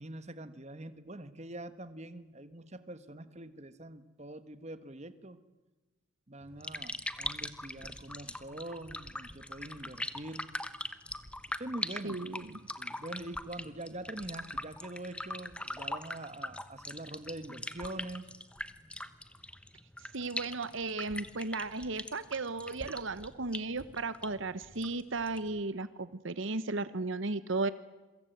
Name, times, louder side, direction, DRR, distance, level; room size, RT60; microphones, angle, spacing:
voice 1, 0.0-5.4 6.3-10.5 11.5-12.2 12.8-18.3, right 1 dB, 30° right, 12 dB, 1.3 m, -44 dB
sound 1, 6.4-25.6, left 1 dB, 5° left, 1.0 m, -42 dB
voice 2, 12.0-12.6 20.1-27.7, right 3 dB, 60° right, 14 dB, 0.9 m, -35 dB
27.5 x 23.0 x 9.2 m, 1.2 s
head